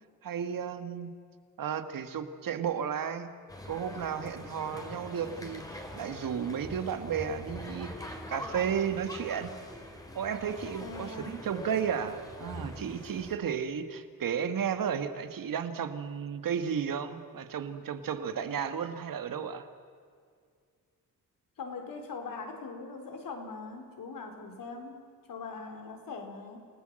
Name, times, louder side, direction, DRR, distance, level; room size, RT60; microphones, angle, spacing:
voice 1, 0.2-1.1 1.6-3.3 3.6-9.5 10.2-19.7, right 7 dB, 70° right, 9 dB, 1.8 m, -33 dB
sound 1, 3.5-13.3, left 1 dB, 10° left, 3.0 m, -43 dB
voice 2, 10.8-11.4 21.6-26.6, left 4 dB, 70° left, 4 dB, 4.3 m, -41 dB
29.0 x 19.5 x 7.7 m, 2.2 s
wide cardioid pair, 160°, 35 cm